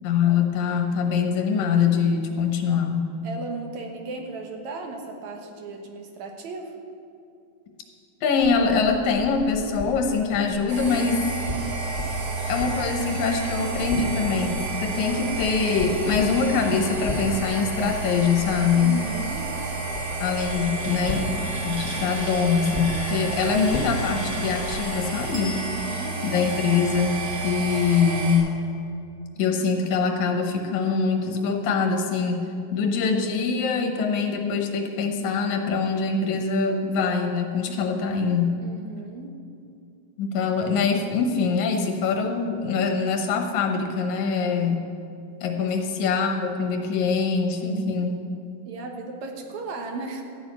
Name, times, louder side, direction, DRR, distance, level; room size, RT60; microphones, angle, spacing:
voice 1, 0.0-3.1 8.2-11.3 12.5-19.0 20.2-25.6 26.2-28.5 29.4-32.4 32.7-38.5 40.2-44.9 45.4-48.1, left 5 dB, 80° left, 4 dB, 2.5 m, -24 dB
voice 2, 3.2-6.8 18.7-19.5 25.6-26.2 38.6-39.3 45.5-45.7 47.6-48.2 48.7-50.2, right 3 dB, 75° right, 3 dB, 2.6 m, -36 dB
sound 1, 8.4-25.2, left 2 dB, 20° left, 1.5 m, -36 dB
sound 2, 10.7-28.4, right 3 dB, 50° right, 3.5 m, -31 dB
Bell, 25.3-28.4, right 2 dB, 20° right, 1.5 m, -45 dB
13.0 x 6.4 x 9.3 m, 2.5 s
omnidirectional pair, 3.3 m